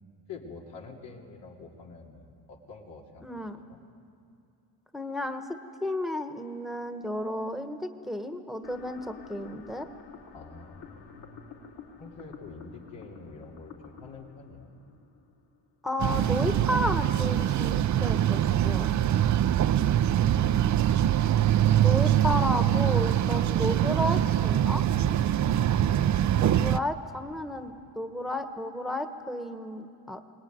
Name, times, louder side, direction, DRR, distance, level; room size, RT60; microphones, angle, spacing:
voice 1, 0.3-3.2 3.7-3.8 10.3-11.6 12.0-14.7 19.3-20.7 25.5-25.7, left 4 dB, 80° left, -2 dB, 3.3 m, -46 dB
voice 2, 3.2-3.6 4.9-5.5 5.8-9.9 15.8-18.9 21.8-24.8 26.4-30.2, left 1 dB, ahead, 7 dB, 1.2 m, -32 dB
sound 1, 8.6-15.7, left 6 dB, 65° left, 4.6 m, -49 dB
sound 2, 16.0-26.8, right 11 dB, 45° right, 0.5 m, -24 dB
23.5 x 19.0 x 9.6 m, 2.6 s
cardioid pair, 85°, 43 cm